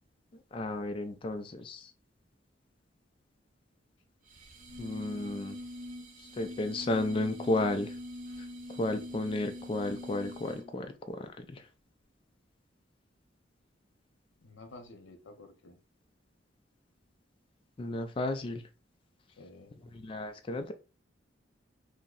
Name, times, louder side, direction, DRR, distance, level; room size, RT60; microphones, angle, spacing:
voice 1, 0.5-1.9 4.8-5.6 6.4-7.9 8.8-10.9 11.2-11.6 17.8-18.6 19.9-20.7, left 2 dB, 30° left, 6 dB, 0.3 m, -33 dB
sound 1, 4.3-10.8, left 1 dB, 45° right, 0.6 m, -44 dB
voice 2, 5.2-5.7 14.4-15.8 19.4-19.8, left 2 dB, 90° left, 6 dB, 0.7 m, -52 dB
2.7 x 2.1 x 3.8 m, 0.31 s
head